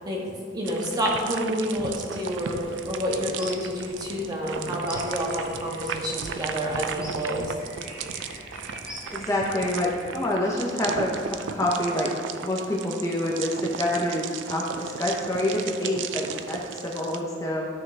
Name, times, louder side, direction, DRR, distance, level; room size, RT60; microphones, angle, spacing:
voice 1, 0.0-2.6 2.8-7.5, equal, 20° right, -2 dB, 1.5 m, -29 dB
sound 1, 0.6-17.2, right 6 dB, 80° right, 0.5 m, -36 dB
sound 2, 2.4-10.2, equal, 5° right, 1.7 m, -44 dB
voice 2, 9.1-12.1 12.4-17.7, left 1 dB, 15° left, -3 dB, 1.0 m, -27 dB
13.0 x 6.2 x 3.5 m, 2.1 s
head